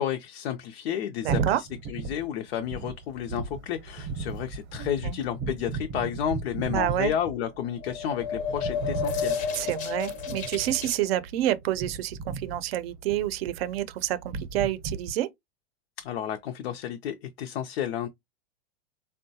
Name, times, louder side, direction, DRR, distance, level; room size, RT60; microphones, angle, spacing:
voice 1, 0.0-9.4 16.0-18.1, left 9 dB, 85° left, 0.5 m, -31 dB
sound 1, 1.2-15.1, right 5 dB, 35° right, 0.6 m, -36 dB
voice 2, 1.2-1.6 4.8-5.2 6.7-7.1 9.5-15.3, right 13 dB, 75° right, 0.5 m, -28 dB
sound 2, 7.6-11.0, left 6 dB, 25° left, 0.4 m, -31 dB
3.6 x 2.1 x 2.6 m
supercardioid pair, 145°, 30 cm